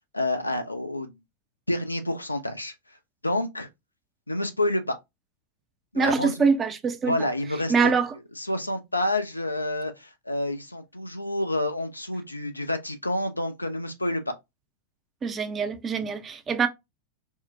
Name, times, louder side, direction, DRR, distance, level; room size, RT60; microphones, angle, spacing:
voice 1, 0.1-1.2 1.7-2.7 3.2-3.7 4.3-5.0 5.9-6.5 7.1-7.7 8.4-14.3, left 1 dB, 85° left, 0.4 m, -28 dB
voice 2, 5.9-7.2 7.7-8.1 15.2-16.7, right 5 dB, 25° right, 0.5 m, -24 dB
3.6 x 2.0 x 2.6 m
figure-of-eight pair, 90°, 0 cm